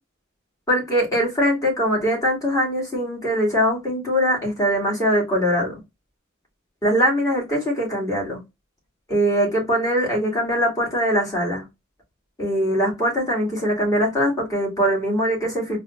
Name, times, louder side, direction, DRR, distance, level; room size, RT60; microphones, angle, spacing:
voice 1, 0.7-5.8 6.8-8.4 9.1-11.6 12.4-15.8, equal, 15° left, -3 dB, 2.4 m, -22 dB
4.0 x 2.7 x 3.2 m, 0.21 s
head